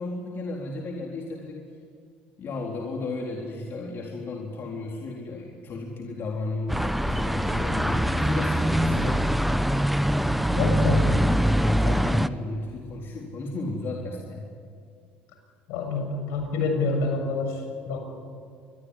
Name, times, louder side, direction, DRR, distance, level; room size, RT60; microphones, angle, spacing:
voice 1, 0.0-1.6 2.4-9.2 11.5-14.4, left 2 dB, 45° left, 0 dB, 3.9 m, -34 dB
sound 1, 6.7-12.3, equal, ahead, 1.1 m, -23 dB
voice 2, 10.5-11.1 15.7-18.0, left 3 dB, 65° left, 4 dB, 7.1 m, -27 dB
27.0 x 22.0 x 9.9 m, 2.2 s
hypercardioid pair, 65°, 5 cm